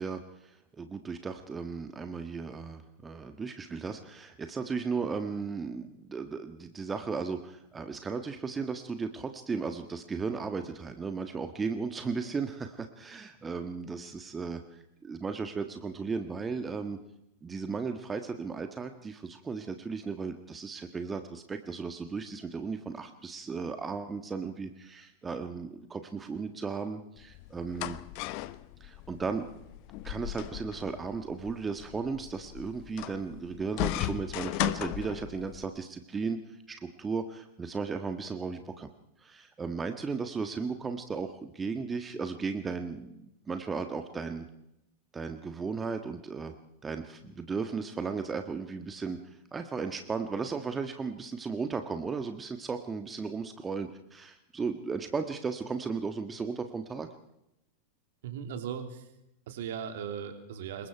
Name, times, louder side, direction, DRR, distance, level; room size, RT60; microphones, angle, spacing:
voice 1, 0.0-17.0 17.4-28.0 28.8-29.5 30.0-36.4 36.7-38.9 39.2-44.5 45.1-46.5 46.8-49.2 49.5-57.1, right 5 dB, 15° right, 7 dB, 1.6 m, -35 dB
sound 1, 27.2-35.6, left 16 dB, 45° left, 1.1 m, -37 dB
voice 2, 58.2-59.1 59.5-60.9, right 8 dB, 55° right, 6 dB, 3.2 m, -38 dB
26.5 x 22.5 x 4.7 m, 0.83 s
figure-of-eight pair, 90°, 0 cm